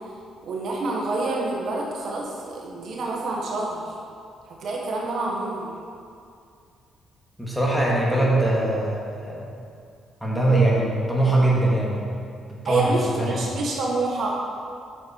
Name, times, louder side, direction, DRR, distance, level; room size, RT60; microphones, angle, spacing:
voice 1, 0.4-3.9 4.5-5.7 12.6-14.4, right 2 dB, 65° right, -2 dB, 1.5 m, -27 dB
voice 2, 7.4-9.5 10.2-12.0 12.6-13.4, right 2 dB, 5° left, -5 dB, 2.3 m, -22 dB
8.1 x 7.0 x 4.7 m, 2.4 s
cardioid pair, 90°, 0 cm